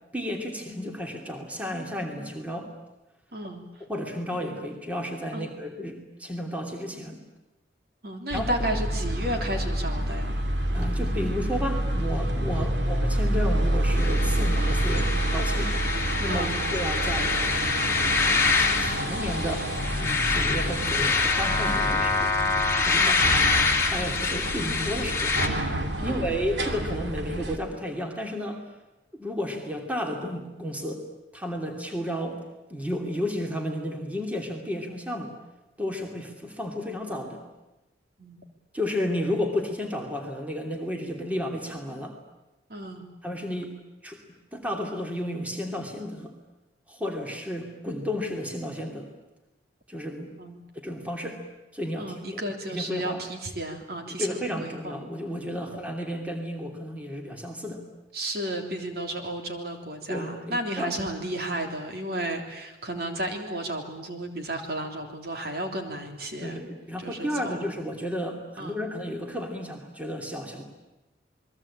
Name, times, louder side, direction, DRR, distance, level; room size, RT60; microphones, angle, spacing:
voice 1, 0.1-2.7 3.8-7.2 8.3-8.7 10.7-15.8 16.2-17.4 18.6-19.7 20.0-22.3 22.8-23.2 23.5-25.4 26.0-28.7 29.1-31.0 31.3-32.4 32.7-35.3 35.8-37.4 38.7-42.2 43.2-43.7 44.0-44.2 44.5-46.3 46.9-49.1 49.9-50.3 50.8-51.4 51.7-52.4 52.7-53.2 54.2-57.8 60.1-60.9 62.9-63.0 66.4-70.6, equal, 10° right, 2 dB, 2.9 m, -32 dB
voice 2, 3.3-3.6 5.3-5.5 8.0-10.4 12.5-12.7 16.3-16.6 23.0-23.4 26.0-26.4 38.2-38.4 42.7-43.1 50.4-50.6 52.0-55.0 58.1-66.6 67.0-67.7 68.6-68.8, right 1 dB, 55° right, 4 dB, 3.4 m, -33 dB
sound 1, 8.3-27.6, right 1 dB, 80° right, 2.9 m, -28 dB
sound 2, 14.0-25.5, left 4 dB, 15° left, 2.8 m, -26 dB
28.5 x 21.5 x 8.7 m, 1.0 s
head